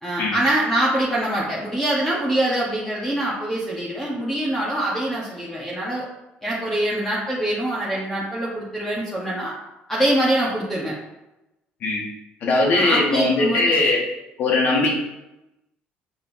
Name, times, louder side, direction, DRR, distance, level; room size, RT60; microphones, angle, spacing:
voice 1, 0.0-6.0 6.4-9.5 9.9-10.9 12.7-13.8, right 1 dB, 5° left, -6 dB, 1.1 m, -24 dB
voice 2, 12.4-14.0 14.4-15.0, left 2 dB, 50° left, -1 dB, 1.6 m, -20 dB
7.0 x 5.2 x 2.7 m, 0.95 s
cardioid pair, 140°, 4 cm